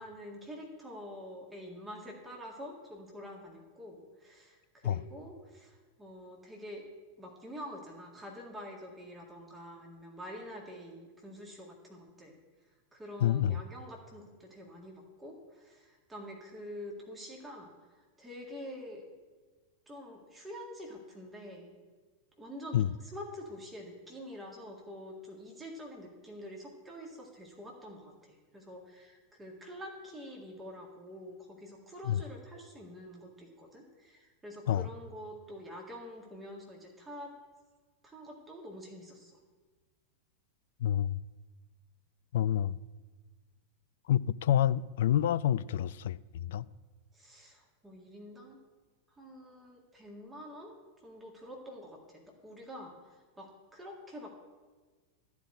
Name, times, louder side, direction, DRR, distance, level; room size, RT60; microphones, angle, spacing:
voice 1, 0.0-6.9 7.2-12.4 12.9-19.0 19.9-21.7 22.4-37.3 38.0-39.4 47.1-48.6 49.1-50.8 51.0-54.3, equal, 10° right, 1.9 m, -47 dB
voice 2, 13.2-13.6 22.7-22.9 32.1-32.2 34.7-34.9 40.8-41.2 42.3-42.8 44.1-46.6, left 11 dB, 55° left, 0.3 m, -28 dB
13.0 x 4.9 x 8.8 m
figure-of-eight pair, 90°, 0 cm